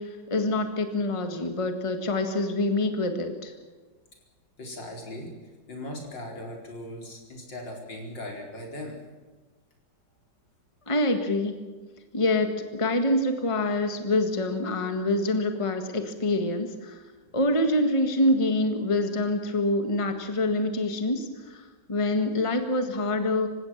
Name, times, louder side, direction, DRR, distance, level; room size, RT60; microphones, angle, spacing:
voice 1, 0.0-3.5 10.9-11.6 12.1-17.0 17.3-23.5, left 1 dB, 15° left, 6 dB, 1.7 m, -26 dB
voice 2, 4.6-5.3 5.7-9.0 17.2-17.3, left 1 dB, 75° left, 1 dB, 5.3 m, -38 dB
27.0 x 16.5 x 7.4 m, 1.3 s
omnidirectional pair, 2.0 m